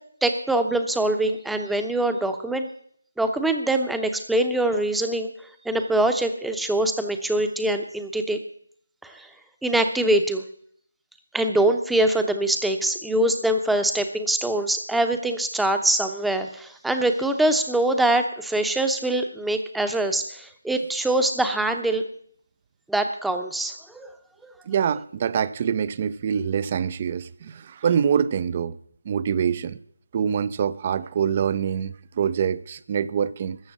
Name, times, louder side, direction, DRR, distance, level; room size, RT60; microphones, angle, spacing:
voice 1, 0.2-2.7 3.2-5.3 5.6-8.4 9.0-9.3 9.6-10.4 11.3-22.0 22.9-24.1 24.4-24.5, right 1 dB, ahead, 7 dB, 0.8 m, -23 dB
voice 2, 24.7-28.8 29.1-29.8 30.1-33.6, right 7 dB, 30° right, 19 dB, 0.5 m, -25 dB
13.5 x 7.0 x 9.5 m, 0.63 s
figure-of-eight pair, 155°, 0 cm